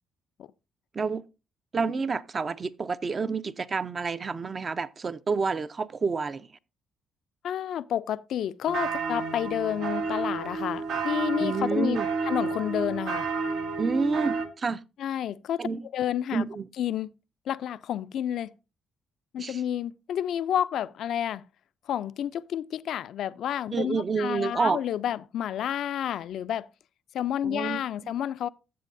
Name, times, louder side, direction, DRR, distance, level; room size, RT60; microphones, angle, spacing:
voice 1, 1.7-6.5 11.4-12.1 13.8-14.8 15.6-15.8 16.3-16.7 19.4-19.6 23.7-24.8 27.4-27.8, right 4 dB, 40° right, 0.5 m, -29 dB
voice 2, 7.4-12.0 12.3-13.3 15.0-16.4 16.8-17.1 17.5-18.5 19.3-21.5 21.9-26.7 27.1-28.5, left 10 dB, 70° left, 0.4 m, -30 dB
sound 1, 8.7-14.5, right 4 dB, 80° right, 1.4 m, -30 dB
13.5 x 7.4 x 2.6 m
cardioid pair, 90°, 0 cm